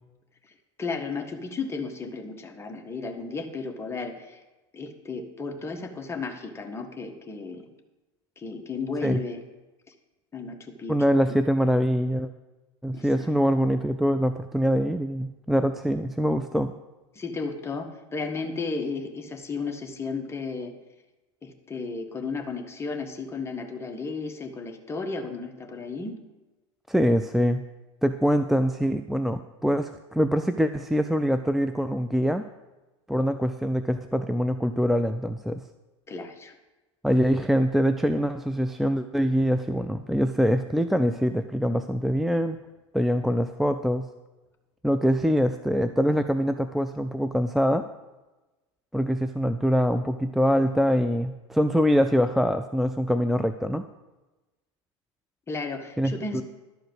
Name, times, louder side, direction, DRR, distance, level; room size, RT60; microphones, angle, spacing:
voice 1, 0.8-4.4 4.7-7.7 8.4-9.4 10.3-11.0 12.9-13.3 17.1-20.8 21.4-26.2 36.1-36.5 55.5-56.4, left 4 dB, 15° left, 4 dB, 1.4 m, -34 dB
voice 2, 10.9-12.3 12.8-16.7 26.9-27.6 28.0-32.4 33.1-35.6 37.0-42.6 42.9-44.1 44.8-47.8 48.9-53.8 56.0-56.4, equal, ahead, 9 dB, 0.4 m, -24 dB
11.5 x 5.1 x 7.9 m, 1.1 s
hypercardioid pair, 110°, 15 cm